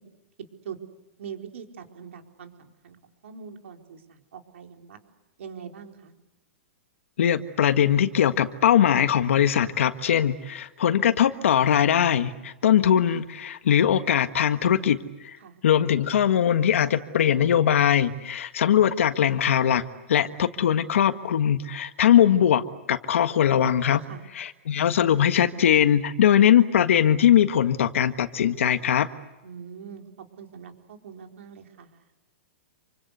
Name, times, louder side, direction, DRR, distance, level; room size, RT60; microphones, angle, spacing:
voice 1, 1.2-3.0 3.2-5.0 5.4-6.1 15.4-15.6 24.0-24.2 29.4-30.0 30.4-32.0, right 7 dB, 75° right, 4 dB, 4.4 m, -42 dB
voice 2, 7.2-15.4 15.6-19.8 20.1-22.6 22.9-24.0 24.3-29.1, left 9 dB, 75° left, 9 dB, 1.5 m, -21 dB
28.0 x 25.0 x 8.3 m, 1.0 s
hypercardioid pair, 155°, 7 cm